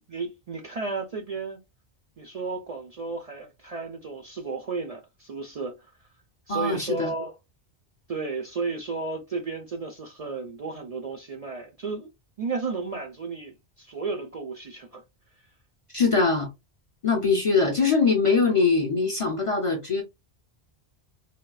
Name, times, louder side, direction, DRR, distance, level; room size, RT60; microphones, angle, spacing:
voice 1, 0.0-1.6 2.2-5.9 6.5-7.3 8.1-12.1 12.4-15.0, right 4 dB, 55° right, 0.4 m, -33 dB
voice 2, 6.5-7.1 15.9-16.5 17.0-20.0, left 4 dB, 45° left, 0.5 m, -22 dB
3.5 x 2.2 x 2.3 m
omnidirectional pair, 1.1 m